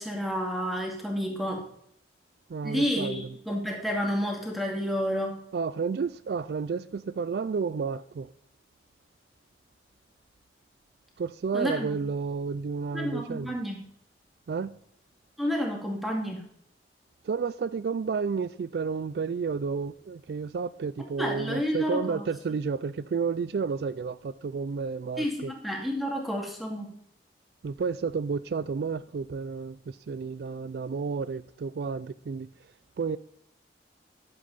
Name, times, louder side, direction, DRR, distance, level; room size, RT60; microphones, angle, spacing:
voice 1, 0.0-1.6 2.6-5.4 11.5-12.0 12.9-13.8 15.4-16.4 21.2-22.2 25.2-26.9, equal, ahead, 2.3 m, -30 dB
voice 2, 2.5-3.3 5.5-8.3 11.2-13.6 14.5-14.8 17.2-25.5 27.6-32.5 33.0-33.2, right 5 dB, 65° right, 0.3 m, -31 dB
11.5 x 7.9 x 4.1 m
head